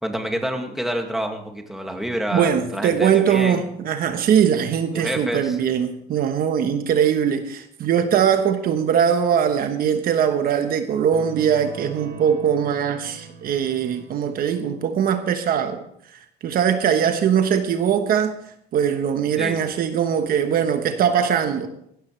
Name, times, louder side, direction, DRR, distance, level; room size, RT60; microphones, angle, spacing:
voice 1, 0.0-3.7 4.9-5.6 19.4-19.6, equal, ahead, 3 dB, 2.1 m, -28 dB
voice 2, 2.3-15.8 16.4-18.4 18.7-21.7, right 8 dB, 60° right, 7 dB, 1.2 m, -21 dB
sound 1, 11.1-14.7, right 5 dB, 85° right, 3.5 m, -42 dB
16.5 x 13.0 x 3.3 m, 0.72 s
cardioid pair, 110°, 17 cm